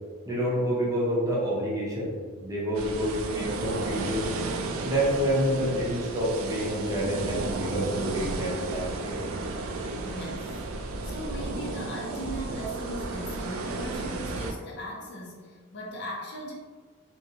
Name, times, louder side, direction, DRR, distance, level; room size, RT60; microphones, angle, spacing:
voice 1, 0.3-2.1 2.4-4.2 4.8-9.2, equal, 15° right, -6 dB, 0.7 m, -28 dB
sound 1, 2.7-14.5, right 3 dB, 85° right, 0.3 m, -33 dB
voice 2, 10.0-10.6 11.0-16.5, equal, 55° left, -2 dB, 0.5 m, -38 dB
2.6 x 2.2 x 2.7 m, 1.5 s
head